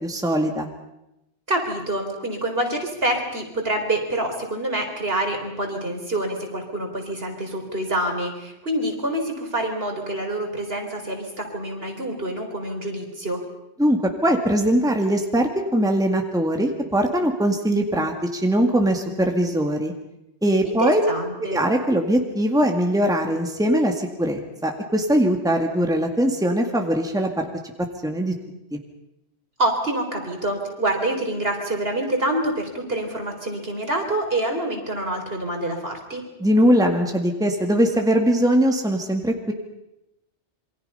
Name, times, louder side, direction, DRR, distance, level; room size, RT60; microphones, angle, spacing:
voice 1, 0.0-0.7 13.8-19.9 20.4-21.0 21.4-27.5 28.0-28.3 28.7-28.8 36.4-39.5, equal, 5° right, 3 dB, 2.0 m, -21 dB
voice 2, 1.5-13.4 20.6-21.6 29.6-36.2, right 1 dB, 60° right, 2 dB, 4.3 m, -26 dB
27.5 x 24.0 x 5.6 m, 0.90 s
omnidirectional pair, 1.2 m